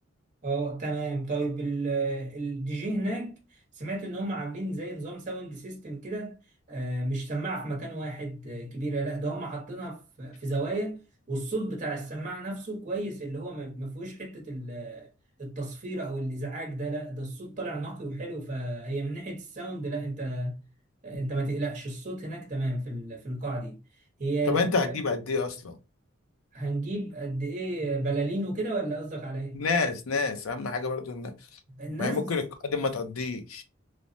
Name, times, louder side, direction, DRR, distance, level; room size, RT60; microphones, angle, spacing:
voice 1, 0.4-6.4 6.7-11.0 11.3-15.1 15.4-20.6 21.0-23.8 24.2-25.0 26.5-29.6 31.7-32.3, right 2 dB, 40° right, 0.8 m, -32 dB
voice 2, 24.5-25.8 29.5-31.3 32.0-33.6, left 4 dB, 85° left, 0.5 m, -28 dB
3.2 x 2.0 x 2.5 m
head